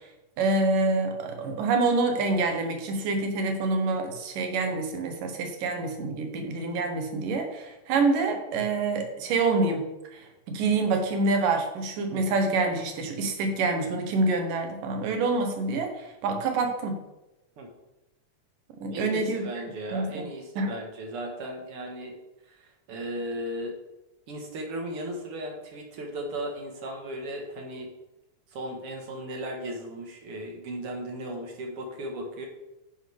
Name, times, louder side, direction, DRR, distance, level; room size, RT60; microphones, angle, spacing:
voice 1, 0.4-9.9 10.1-17.0 18.8-19.4 19.9-20.2 20.6-20.7, right 3 dB, 85° right, 5 dB, 2.9 m, -26 dB
voice 2, 18.9-22.2 22.5-23.7 24.3-27.9 28.5-32.5, right 1 dB, 55° right, 2 dB, 2.0 m, -36 dB
10.0 x 8.3 x 3.5 m, 0.98 s
omnidirectional pair, 3.7 m